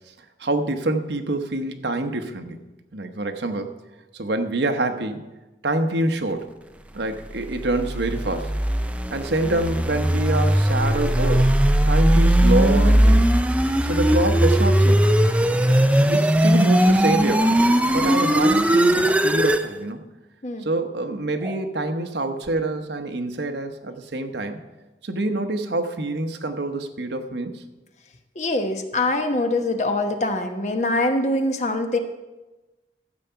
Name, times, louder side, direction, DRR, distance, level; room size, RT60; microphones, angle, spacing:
voice 1, 0.4-2.6 2.9-3.7 4.1-5.3 5.6-6.5 6.9-8.5 9.1-11.5 11.9-13.3 13.8-15.1 16.1-17.6 17.9-20.1 20.6-24.6 25.0-27.6, right 2 dB, 80° right, 6 dB, 1.0 m, -26 dB
sound 1, 7.5-19.7, right 1 dB, 5° right, 0.4 m, -19 dB
sound 2, 19.0-19.2 21.4-21.6 22.4-22.5, right 2 dB, 25° right, 0.9 m, -38 dB
voice 2, 28.3-32.0, left 2 dB, 40° left, 6 dB, 1.0 m, -24 dB
12.5 x 8.2 x 5.7 m, 1.1 s
head